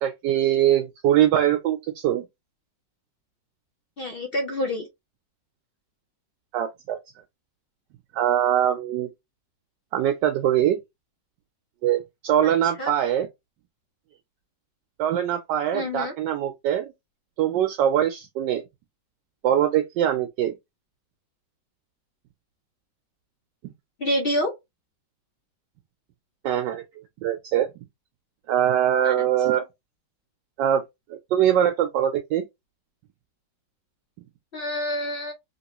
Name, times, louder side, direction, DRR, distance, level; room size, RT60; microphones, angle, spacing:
voice 1, 0.0-2.2 6.5-7.0 8.1-9.1 9.9-10.8 11.8-13.3 15.0-16.9 17.4-18.6 19.4-20.5 23.6-23.7 26.4-26.8 27.2-27.7 28.5-29.6 30.6-30.8 31.3-32.4, right 11 dB, 80° right, 1.2 m, -22 dB
voice 2, 4.0-4.9 12.4-12.9 15.7-16.1 24.0-24.5 29.0-29.1 34.5-35.3, left 1 dB, 85° left, 0.5 m, -27 dB
2.9 x 2.9 x 2.9 m
omnidirectional pair, 1.9 m